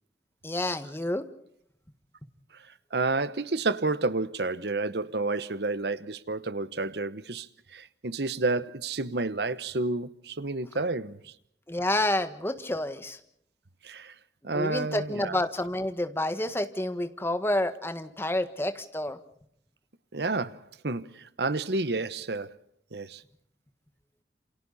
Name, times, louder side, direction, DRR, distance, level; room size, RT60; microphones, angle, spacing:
voice 1, 0.4-1.2 11.7-13.2 14.5-19.2, left 1 dB, 15° left, 1.6 m, -29 dB
voice 2, 2.9-7.5 7.7-11.3 13.8-14.1 14.4-15.4 20.1-22.6 22.9-23.2, right 3 dB, 65° right, 1.0 m, -30 dB
28.5 x 27.5 x 4.2 m
head